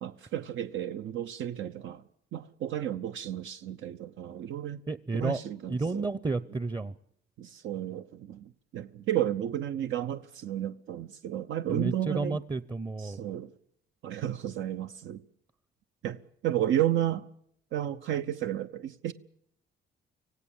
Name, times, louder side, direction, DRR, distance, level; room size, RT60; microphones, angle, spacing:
voice 1, 0.0-2.0 2.3-4.8 5.2-6.1 7.4-12.4 13.0-13.5 14.0-15.2 16.0-17.3 17.7-19.1, right 11 dB, 75° right, 0.9 m, -32 dB
voice 2, 4.9-5.4 5.7-6.9 11.7-13.2, right 3 dB, 20° right, 0.8 m, -31 dB
26.0 x 16.5 x 7.3 m
cardioid pair, 90°, 20 cm